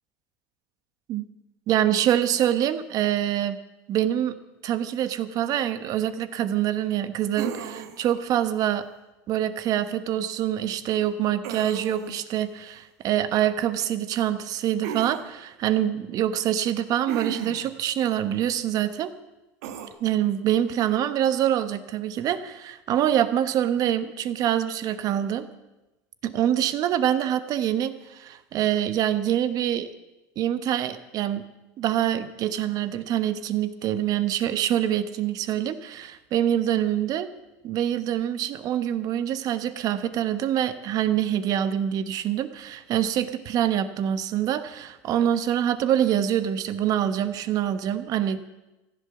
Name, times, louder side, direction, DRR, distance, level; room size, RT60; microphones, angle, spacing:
voice 1, 1.7-3.6 3.9-4.3 4.6-8.9 9.3-19.1 20.0-25.5 26.2-29.9 30.4-31.5 31.8-37.3 37.6-48.4, right 11 dB, 45° right, 12 dB, 1.1 m, -25 dB
sound 1, 7.4-8.1 11.4-12.2 14.8-15.2 17.1-17.7 19.6-19.9, right 8 dB, 80° right, 1.5 m, -34 dB
14.5 x 11.5 x 7.1 m, 1.0 s
supercardioid pair, 125°, 9 cm